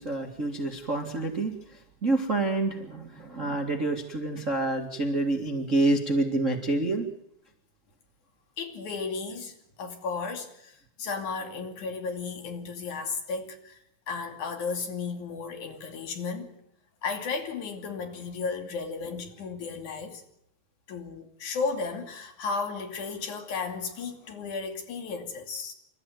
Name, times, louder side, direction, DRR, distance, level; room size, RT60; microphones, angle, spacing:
voice 1, 0.0-7.0, right 2 dB, 40° right, 1.0 m, -28 dB
voice 2, 8.6-13.8 14.1-16.5 17.0-20.2 20.9-25.7, left 4 dB, 45° left, 3.7 m, -34 dB
28.0 x 13.5 x 9.3 m
omnidirectional pair, 5.2 m